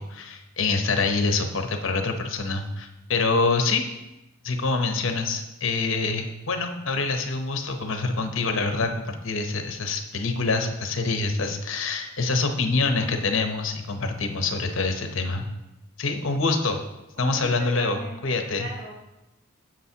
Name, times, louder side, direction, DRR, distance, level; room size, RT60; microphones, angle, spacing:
voice 1, 0.0-3.8 4.4-15.4 16.0-16.8 17.2-18.7, left 3 dB, 65° left, 5 dB, 0.8 m, -26 dB
voice 2, 17.1-18.9, right 1 dB, 75° right, -3 dB, 3.4 m, -39 dB
10.0 x 7.5 x 2.8 m, 0.96 s
head